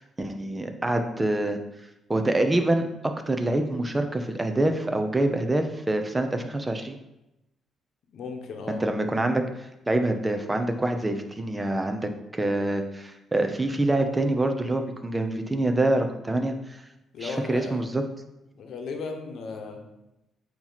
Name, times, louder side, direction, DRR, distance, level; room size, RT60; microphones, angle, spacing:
voice 1, 0.0-1.6 2.1-7.0 8.7-16.8 17.2-18.0, right 1 dB, 15° right, 5 dB, 0.7 m, -26 dB
voice 2, 8.1-8.8 17.1-17.8 18.6-19.8, left 4 dB, 70° left, 3 dB, 1.0 m, -35 dB
8.3 x 3.1 x 4.0 m, 0.92 s
cardioid pair, 90°, 0 cm